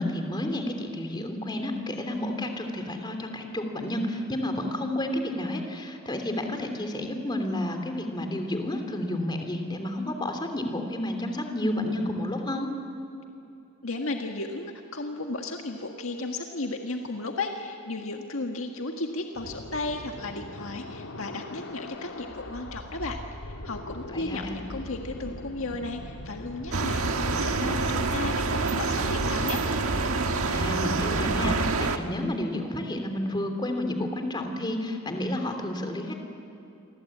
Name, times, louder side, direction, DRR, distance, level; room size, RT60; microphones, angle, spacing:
voice 1, 0.0-12.7 24.1-24.6 30.5-36.1, left 1 dB, 20° left, 5 dB, 2.9 m, -31 dB
voice 2, 13.8-23.2 23.6-27.1 27.4-29.6, left 2 dB, 70° left, 3 dB, 1.7 m, -34 dB
sound 1, 19.3-30.0, left 1 dB, 85° left, 1.8 m, -41 dB
sound 2, 26.7-32.0, right 3 dB, 80° right, 1.6 m, -26 dB
28.5 x 24.5 x 8.6 m, 2.7 s
head